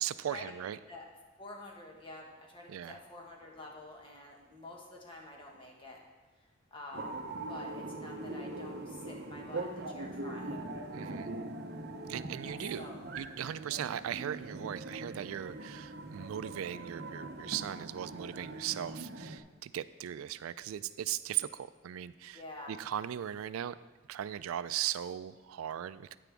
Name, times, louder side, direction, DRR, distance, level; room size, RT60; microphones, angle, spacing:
voice 1, 0.0-0.8 2.7-3.0 10.9-11.3 12.1-12.9 13.2-22.4 22.7-23.8 24.1-26.2, right 11 dB, 90° right, 15 dB, 0.3 m, -38 dB
voice 2, 1.4-6.0 6.4-7.1 7.5-10.6 12.4-13.0 22.3-22.8, left 2 dB, 25° left, -1 dB, 1.4 m, -48 dB
sound 1, 6.9-19.4, right 2 dB, 50° right, 0.7 m, -42 dB
9.7 x 9.1 x 3.5 m, 1.2 s
head